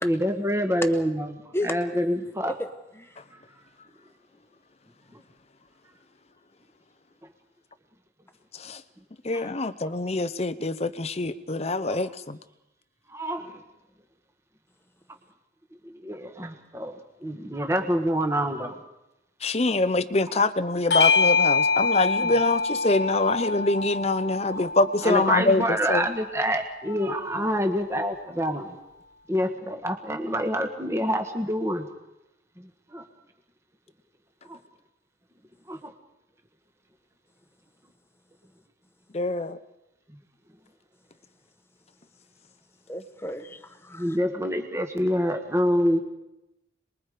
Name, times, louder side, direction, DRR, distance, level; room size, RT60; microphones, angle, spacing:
voice 1, 0.0-2.5 5.1-5.2 13.1-13.5 15.8-17.0 17.2-18.8 25.0-28.8 29.3-31.9 32.6-33.0 34.5-34.6 35.7-35.9 43.9-46.0, equal, 15° right, 5 dB, 1.6 m, -26 dB
voice 2, 9.2-12.4 19.4-26.1 39.1-39.6, left 2 dB, 35° left, 13 dB, 0.8 m, -25 dB
Bell / Doorbell, 20.9-25.7, left 4 dB, 65° left, 1.0 m, -25 dB
voice 3, 42.9-44.2, left 1 dB, 15° left, 8 dB, 1.3 m, -33 dB
27.5 x 21.5 x 5.1 m, 0.91 s
head